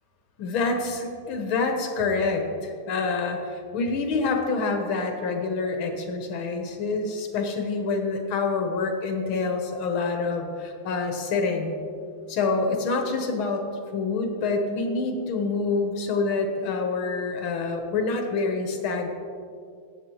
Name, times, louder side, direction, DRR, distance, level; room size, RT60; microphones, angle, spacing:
voice 1, 0.4-11.8 12.3-13.6 13.9-19.1, left 4 dB, 75° left, 4 dB, 1.8 m, -27 dB
14.5 x 8.5 x 3.0 m, 2.2 s
omnidirectional pair, 2.3 m